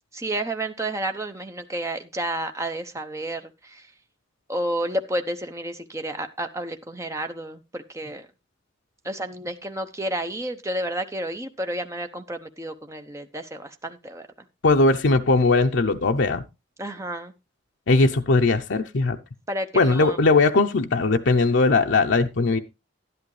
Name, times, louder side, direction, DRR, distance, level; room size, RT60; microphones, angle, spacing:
voice 1, 0.1-3.8 4.5-8.3 9.0-14.3 16.8-17.3 19.5-20.2, right 1 dB, 15° right, 7 dB, 0.8 m, -31 dB
voice 2, 14.6-16.4 17.9-19.2 19.7-22.6, left 3 dB, 65° left, 5 dB, 0.6 m, -19 dB
11.5 x 11.0 x 3.2 m, 0.26 s
head